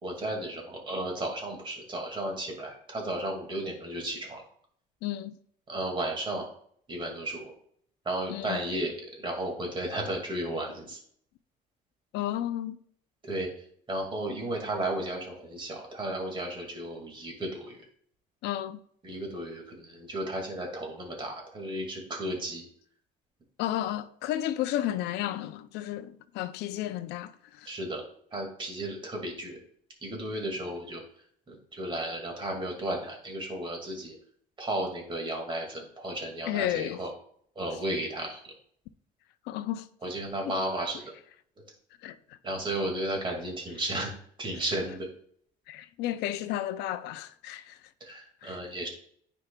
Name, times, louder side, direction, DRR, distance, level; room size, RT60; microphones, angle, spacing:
voice 1, 0.0-4.4 5.7-6.4 6.9-7.5 8.1-11.0 13.2-13.5 13.9-17.7 19.0-22.6 27.7-28.0 28.3-29.6 30.0-31.0 31.5-34.1 34.6-37.1 37.6-38.5 40.0-41.0 42.4-44.1 44.4-45.1 48.1-48.9, right 1 dB, 30° right, 2.0 m, -34 dB
voice 2, 5.0-5.4 8.3-8.6 12.1-12.8 18.4-18.8 23.6-27.7 36.5-37.0 39.5-39.9 40.4-40.6 42.0-42.4 45.7-47.8 48.4-48.6, left 13 dB, 85° left, 0.4 m, -33 dB
9.4 x 4.6 x 2.2 m
cardioid pair, 110°, 17 cm